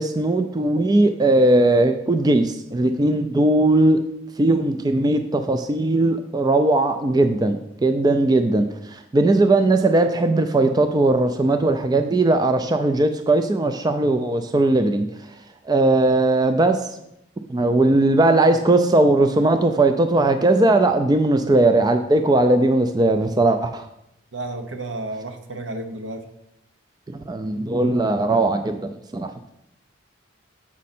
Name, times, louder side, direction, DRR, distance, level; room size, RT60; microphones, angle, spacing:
voice 1, 0.0-4.0 4.4-15.1 15.7-16.9 17.5-23.9 27.1-29.3, right 2 dB, 20° right, 7 dB, 0.3 m, -19 dB
voice 2, 24.3-26.2, right 2 dB, 75° right, 6 dB, 0.9 m, -32 dB
7.3 x 5.2 x 4.2 m, 0.81 s
head